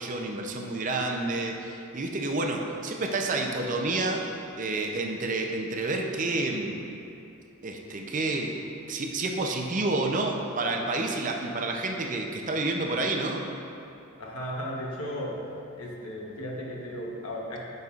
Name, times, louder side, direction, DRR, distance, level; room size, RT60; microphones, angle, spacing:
voice 1, 0.0-4.2 4.6-7.0 7.6-8.5 8.9-13.4, right 2 dB, 35° right, 2 dB, 0.6 m, -29 dB
voice 2, 14.2-15.5 15.8-17.7, equal, 85° left, -2 dB, 1.1 m, -35 dB
12.0 x 5.4 x 2.5 m, 2.8 s
head